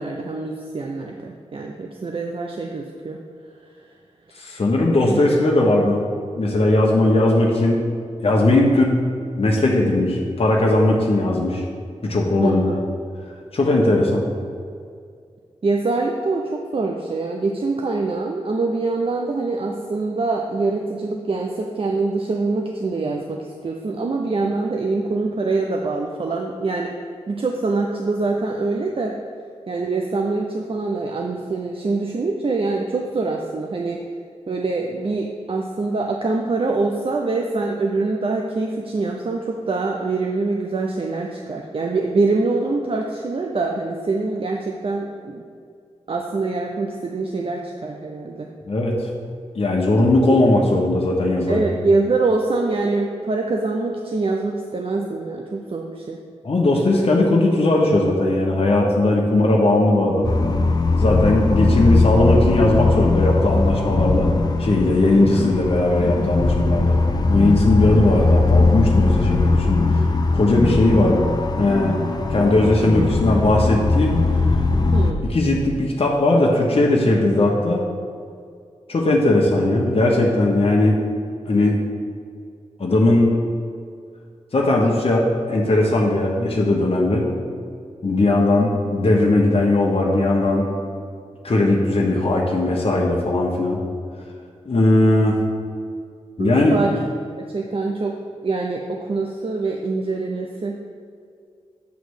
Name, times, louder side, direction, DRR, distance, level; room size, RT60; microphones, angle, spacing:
voice 1, 0.0-3.2 5.1-5.2 12.4-12.8 15.6-26.9 27.3-29.1 29.7-34.0 34.5-45.4 46.1-48.5 50.3-50.4 51.5-56.2 59.3-59.4 74.9-75.3 96.4-97.0 97.4-98.1 98.4-100.7, right 3 dB, 50° right, 1 dB, 0.6 m, -24 dB
voice 2, 4.4-6.0 6.3-7.8 8.2-9.0 9.4-11.6 12.0-12.8 13.5-14.2 48.7-48.9 49.5-51.6 56.4-60.3 61.0-64.3 64.6-66.9 67.3-70.0 70.3-71.2 71.6-71.9 72.3-74.1 75.3-77.8 78.9-81.0 81.5-81.8 82.8-83.4 84.5-87.3 88.0-90.7 91.4-93.8 94.7-95.4 96.4-96.8, left 2 dB, 55° left, -2 dB, 1.0 m, -18 dB
sound 1, 60.2-75.1, left 3 dB, 35° left, 0.6 m, -19 dB
8.2 x 3.1 x 6.3 m, 2.2 s
cardioid pair, 55°, 12 cm